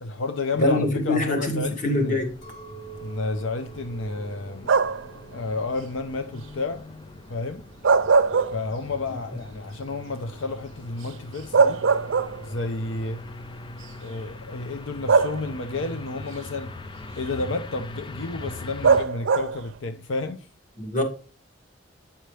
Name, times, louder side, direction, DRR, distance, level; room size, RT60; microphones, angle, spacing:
voice 1, 0.0-2.2 3.0-4.7 5.3-6.8 7.3-7.6 8.5-11.8 12.4-13.2 14.0-16.8 17.2-20.5, left 3 dB, 85° left, 0.6 m, -31 dB
voice 2, 0.6-2.3 20.8-21.0, left 1 dB, 40° left, 1.9 m, -24 dB
sound 1, 1.6-19.0, left 2 dB, 25° left, 0.5 m, -41 dB
Chink clink, 2.4-6.8 7.2-7.8, right 8 dB, 65° left, 1.4 m, -47 dB
sound 2, 4.6-5.2 7.6-9.0 9.4-9.5 11.1-11.2 11.5-12.7 13.7-13.8 15.1-15.8 18.8-19.7, right 5 dB, 90° right, 0.5 m, -21 dB
9.0 x 5.7 x 3.3 m
head